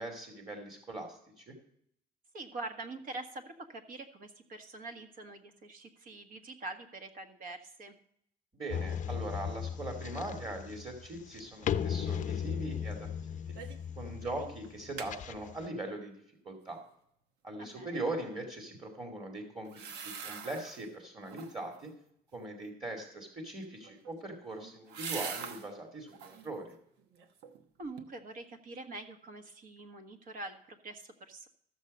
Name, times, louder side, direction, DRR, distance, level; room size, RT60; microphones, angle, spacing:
voice 1, 0.0-1.5 8.5-13.5 14.0-16.8 17.4-19.7 20.0-21.9 22.3-26.7, right 2 dB, 30° right, 2 dB, 2.4 m, -41 dB
voice 2, 2.3-8.0 14.2-14.5 17.6-18.0 27.8-31.5, right 2 dB, 55° right, 6 dB, 1.5 m, -45 dB
sound 1, 8.7-15.7, left 8 dB, 50° left, 0.6 m, -37 dB
sound 2, 13.6-13.9 14.2-14.3 14.6-15.1 19.6-20.9 21.2-21.8 23.7-25.7 26.1-26.5 27.0-27.6 28.0-28.1, right 6 dB, 90° right, 1.1 m, -43 dB
13.5 x 7.3 x 5.4 m, 0.70 s
cardioid pair, 110°, 17 cm